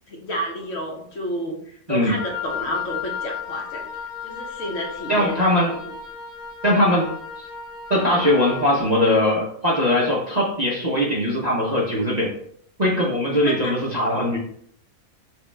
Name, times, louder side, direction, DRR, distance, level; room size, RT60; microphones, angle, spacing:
voice 1, 0.1-3.9 4.2-5.5 5.8-5.9 13.4-13.8, equal, 55° left, 0 dB, 1.1 m, -30 dB
Wind instrument woodwind instrument, 2.2-8.7, left 7 dB, 70° right, 1.9 m, -34 dB
voice 2, 5.1-5.7 6.6-7.1 7.4-7.5 7.9-12.3 12.8-14.4, left 1 dB, 40° right, -5 dB, 0.6 m, -20 dB
6.1 x 2.4 x 3.2 m, 0.65 s
omnidirectional pair, 1.7 m